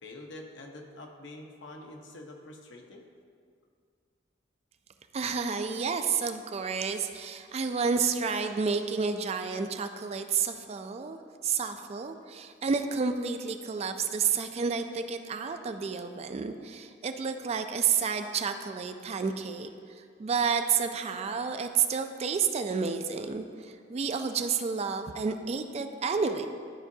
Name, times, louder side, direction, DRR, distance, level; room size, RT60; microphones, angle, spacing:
voice 1, 0.0-3.0, left 2 dB, 75° left, 2 dB, 0.9 m, -46 dB
voice 2, 5.1-19.7 20.0-26.5, right 5 dB, 35° right, 7 dB, 0.3 m, -30 dB
12.0 x 4.7 x 2.7 m, 2.1 s
head